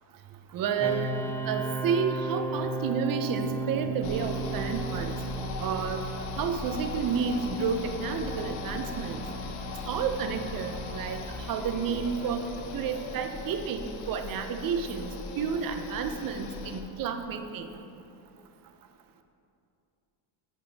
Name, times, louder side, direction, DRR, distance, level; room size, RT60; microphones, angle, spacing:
voice 1, 0.5-1.1 1.5-5.1 5.6-6.0 6.4-9.2 9.9-11.2 11.5-12.5 12.7-15.1 15.4-17.8, right 6 dB, 45° right, 7 dB, 0.6 m, -30 dB
sound 1, 0.8-13.6, right 3 dB, 5° left, 0.5 m, -37 dB
sound 2, 4.0-16.8, left 4 dB, 75° left, 0.9 m, -38 dB
8.0 x 5.4 x 3.4 m, 2.6 s
supercardioid pair, 95°, 48 cm